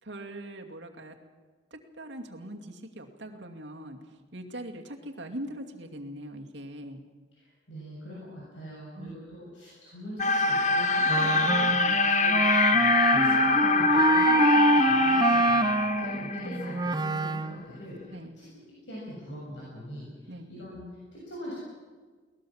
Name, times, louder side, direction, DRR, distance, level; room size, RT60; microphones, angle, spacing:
voice 1, 0.0-1.1 1.7-4.0 4.3-7.0 9.0-9.1 9.5-9.6 11.7-11.9 18.1-18.4 20.3-20.5, right 1 dB, 70° right, 3 dB, 2.5 m, -41 dB
voice 2, 7.3-21.6, equal, 75° left, -5 dB, 7.1 m, -42 dB
sound 1, 10.2-17.0, left 4 dB, 40° left, 1.0 m, -24 dB
Wind instrument woodwind instrument, 11.1-17.6, right 2 dB, 20° right, 0.6 m, -25 dB
22.0 x 19.0 x 7.2 m, 1.4 s
head